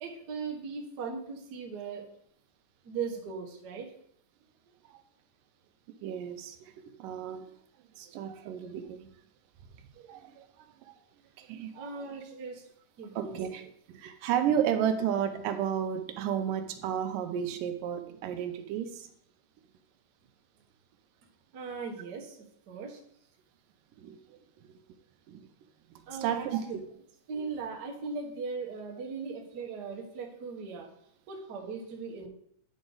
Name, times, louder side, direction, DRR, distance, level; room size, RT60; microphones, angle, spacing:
voice 1, 0.0-2.0 2.8-3.9 11.7-12.6 13.0-13.4 21.5-22.4 22.7-23.0 26.1-26.8 27.3-30.9 31.3-32.3, right 5 dB, 60° right, 0 dB, 1.0 m, -38 dB
voice 2, 6.0-6.7 7.0-7.5 8.0-9.1 10.0-11.0 11.4-12.1 13.2-13.6 13.9-19.1 24.0-24.4 25.3-25.4 26.1-26.6, right 9 dB, 85° right, 7 dB, 2.3 m, -32 dB
9.7 x 5.1 x 3.9 m, 0.69 s
omnidirectional pair, 3.8 m